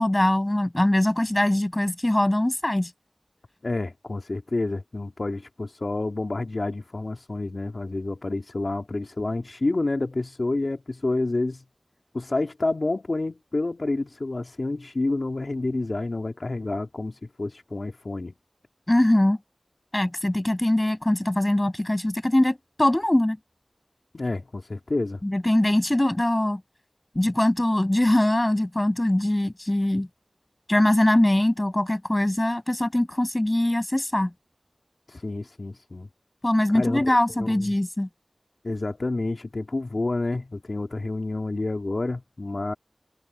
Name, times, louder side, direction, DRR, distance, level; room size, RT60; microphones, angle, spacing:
voice 1, 0.0-2.9 18.9-19.4 19.9-23.4 25.2-26.6 27.1-30.1 30.7-34.3 36.4-38.1, left 1 dB, 25° left, 7.7 m, -22 dB
voice 2, 3.6-11.6 12.1-18.3 24.1-25.2 35.1-36.1 36.7-37.7 38.6-42.7, left 2 dB, 65° left, 2.5 m, -29 dB
wide cardioid pair, 45°, 0 cm